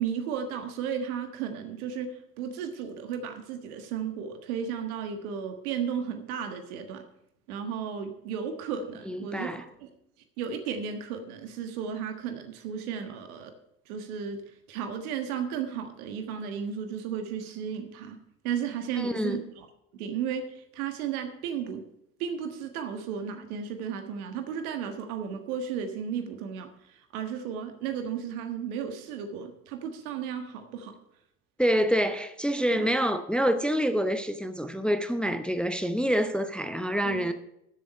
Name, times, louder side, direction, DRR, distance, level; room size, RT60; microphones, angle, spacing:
voice 1, 0.0-7.0 7.5-9.9 10.4-13.5 13.9-14.4 14.7-18.2 18.4-19.7 19.9-21.8 22.2-30.9 32.7-32.9 37.0-37.3, right 7 dB, 70° right, 1.5 m, -34 dB
voice 2, 9.1-9.6 19.0-19.4 31.6-37.3, equal, ahead, 0.8 m, -27 dB
13.5 x 7.5 x 5.2 m
figure-of-eight pair, 60°, 45 cm